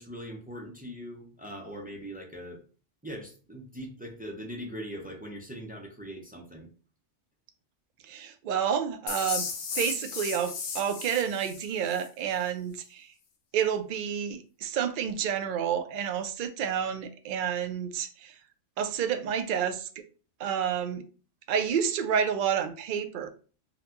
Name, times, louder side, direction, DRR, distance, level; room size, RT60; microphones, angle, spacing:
voice 1, 0.0-2.6 3.0-6.7, equal, 10° right, 0 dB, 0.4 m, -41 dB
voice 2, 8.0-9.5 9.8-13.1 13.5-18.4 18.8-19.9 20.4-21.0 21.5-23.3, right 8 dB, 60° right, 8 dB, 0.5 m, -29 dB
sound 1, 9.1-12.1, left 5 dB, 60° left, 0.7 m, -35 dB
3.9 x 2.1 x 2.7 m, 0.37 s
omnidirectional pair, 1.2 m